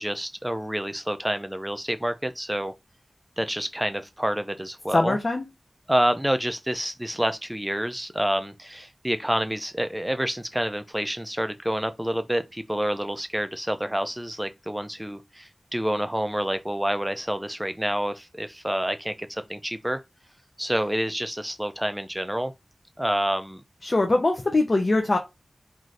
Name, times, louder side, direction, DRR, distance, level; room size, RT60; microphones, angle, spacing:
voice 1, 0.0-2.7 3.4-5.2 5.9-20.0 20.6-22.5 23.0-23.6, equal, 10° right, 0.3 m, -28 dB
voice 2, 4.9-5.4 23.8-25.2, left 2 dB, 50° left, 0.5 m, -22 dB
2.6 x 2.5 x 3.1 m
wide cardioid pair, 75°, 0 cm